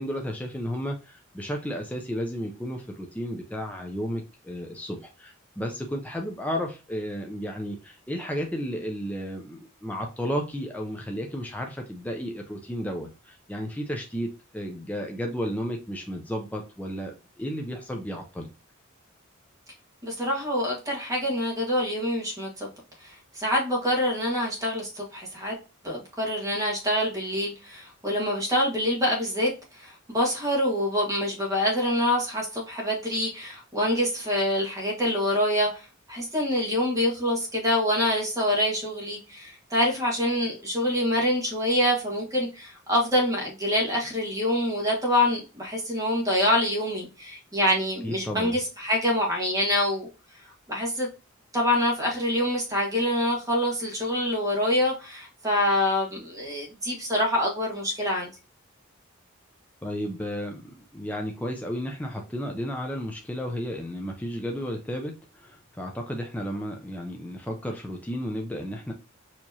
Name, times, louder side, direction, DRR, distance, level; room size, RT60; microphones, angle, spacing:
voice 1, 0.0-14.3 14.5-18.5 48.0-48.6 59.8-68.9, equal, 5° left, 0.4 m, -33 dB
voice 2, 20.0-22.7 23.0-25.6 25.8-29.5 29.8-50.1 50.7-51.1 51.5-58.3, left 1 dB, 15° right, 1.5 m, -26 dB
4.5 x 2.9 x 2.7 m
head